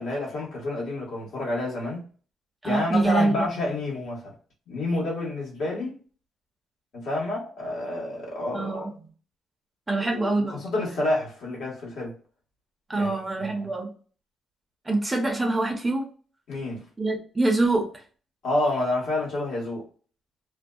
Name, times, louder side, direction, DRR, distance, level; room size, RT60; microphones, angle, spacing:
voice 1, 0.0-2.1 2.6-4.3 4.7-6.0 6.9-8.9 10.0-12.1 12.9-13.6 16.5-16.8 18.4-19.8, left 2 dB, 75° left, 1.2 m, -29 dB
voice 2, 2.6-3.5 8.5-8.9 9.9-10.6 12.9-13.9 14.8-16.0 17.0-18.0, right 2 dB, 20° right, 0.6 m, -25 dB
2.6 x 2.1 x 2.3 m
cardioid pair, 90°, 0 cm